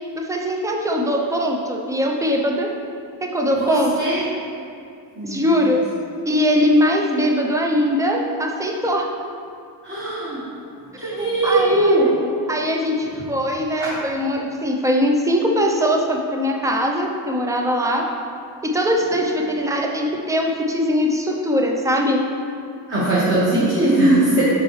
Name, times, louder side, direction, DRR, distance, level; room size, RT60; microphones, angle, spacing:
voice 1, 0.1-2.7 3.2-3.9 5.2-5.8 6.3-9.1 11.0-12.0 12.5-18.1 18.6-22.2, equal, 10° right, 1 dB, 0.4 m, -21 dB
voice 2, 3.6-4.2 5.1-5.5 9.8-10.4 10.9-12.1 13.8-13.9 22.9-24.4, right 1 dB, 25° right, -9 dB, 1.3 m, -19 dB
7.4 x 5.6 x 3.1 m, 2.4 s
cardioid pair, 150°, 42 cm